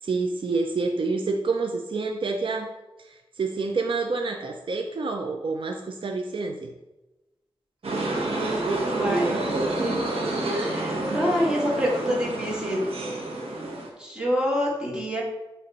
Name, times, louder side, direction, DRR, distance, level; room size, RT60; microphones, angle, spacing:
voice 1, 0.0-2.7 3.0-6.7, right 3 dB, 60° right, 3 dB, 0.5 m, -28 dB
sound 1, 7.8-13.9, right 2 dB, 80° right, 1.2 m, -28 dB
voice 2, 8.3-9.4 9.8-10.0 10.5-12.9 14.0-15.2, equal, 10° right, -4 dB, 2.0 m, -27 dB
7.7 x 3.1 x 4.2 m, 1.0 s
wide cardioid pair, 100°, 10 cm